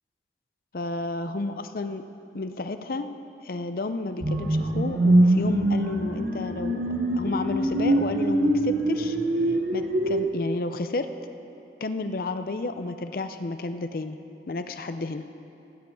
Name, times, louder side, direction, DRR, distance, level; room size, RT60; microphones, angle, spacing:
voice 1, 0.7-2.1 2.3-3.1 3.4-6.8 7.2-9.2 9.5-11.1 11.8-14.2 14.5-15.2, left 2 dB, 55° left, 9 dB, 0.5 m, -31 dB
sound 1, 4.2-10.2, right 1 dB, 55° right, 1.4 m, -23 dB
13.5 x 7.8 x 7.0 m, 2.7 s
head